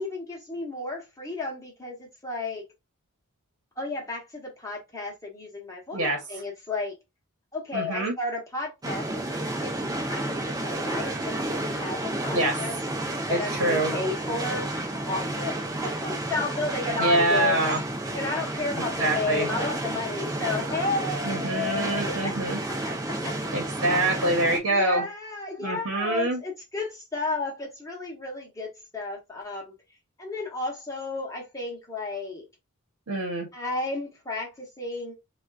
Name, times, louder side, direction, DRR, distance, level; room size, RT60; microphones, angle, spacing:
voice 1, 0.0-2.6 3.8-7.0 7.5-12.7 13.2-14.7 15.1-17.6 18.1-23.3 24.1-29.7 30.2-32.5 33.5-35.1, left 3 dB, 15° left, 0.9 m, -33 dB
voice 2, 7.7-8.1 12.3-12.6 13.3-13.9 17.0-17.8 19.0-19.5 21.2-22.6 23.5-25.0 25.6-26.4 33.1-33.5, right 2 dB, 75° right, 1.0 m, -25 dB
sound 1, 8.8-24.6, right 1 dB, 15° right, 0.5 m, -31 dB
3.6 x 2.3 x 2.3 m
head